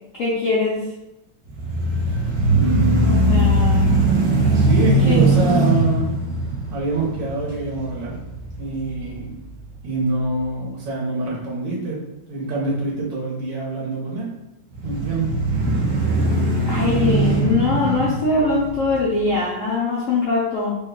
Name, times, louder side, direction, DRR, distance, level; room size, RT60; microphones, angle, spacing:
voice 1, 0.2-0.8 3.0-3.9 5.1-5.2 16.7-20.8, left 3 dB, 70° left, -5 dB, 0.7 m, -22 dB
sound 1, 1.5-9.6 10.1-10.2 14.7-19.2, right 2 dB, 55° right, 1.0 m, -20 dB
voice 2, 2.5-3.6 4.5-6.1 6.7-8.2 8.6-9.3 9.8-12.0 12.3-14.3 14.8-15.3, right 2 dB, 70° right, -5 dB, 1.7 m, -25 dB
3.6 x 2.2 x 3.7 m, 0.93 s
omnidirectional pair, 2.1 m